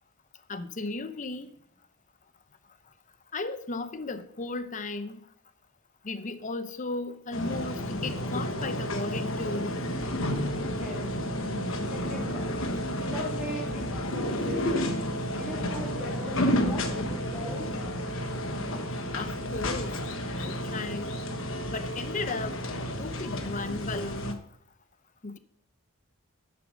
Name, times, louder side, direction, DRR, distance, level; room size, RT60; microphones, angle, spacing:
voice 1, 0.5-1.5 3.3-5.2 6.0-9.7 19.1-20.0 20.4-21.1 21.7-22.6 23.0-24.4 25.2-25.4, left 3 dB, 35° left, 0.7 m, -35 dB
sound 1, 7.3-24.3, left 1 dB, 65° left, 1.2 m, -31 dB
voice 2, 10.0-10.4 10.8-11.3 11.9-12.6 13.1-14.8 15.3-18.0, right 1 dB, 10° right, 2.5 m, -40 dB
11.5 x 6.9 x 6.4 m
head